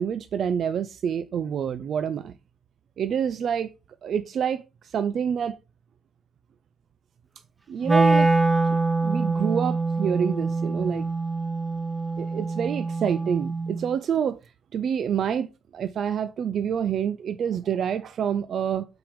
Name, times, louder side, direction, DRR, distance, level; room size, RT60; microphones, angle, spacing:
voice 1, 0.0-2.3 3.0-3.7 4.0-5.5 7.7-8.3 8.7-11.1 12.2-14.4 14.7-18.9, right 8 dB, 55° right, 0.3 m, -27 dB
Wind instrument woodwind instrument, 7.8-13.9, right 3 dB, 20° right, 0.9 m, -24 dB
5.7 x 3.6 x 5.1 m
cardioid pair, 115°, 0 cm